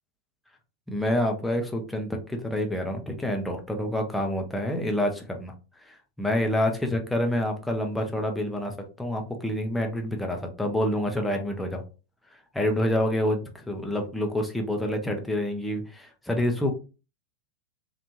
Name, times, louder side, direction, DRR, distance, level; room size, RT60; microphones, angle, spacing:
voice 1, 0.9-5.5 5.9-11.8 12.5-16.7, left 1 dB, 5° left, 2 dB, 0.7 m, -27 dB
3.3 x 2.5 x 2.8 m, 0.33 s
figure-of-eight pair, 90°, 0 cm